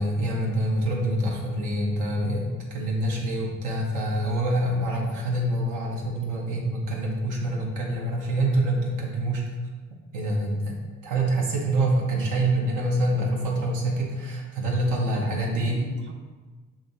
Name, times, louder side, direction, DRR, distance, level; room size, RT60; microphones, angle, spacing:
voice 1, 0.0-9.5 10.1-15.9, right 1 dB, 85° right, -2 dB, 1.1 m, -26 dB
voice 2, 15.0-16.1, right 2 dB, 40° right, 3 dB, 0.6 m, -39 dB
7.2 x 2.5 x 2.7 m, 1.3 s
cardioid pair, 90°, 30 cm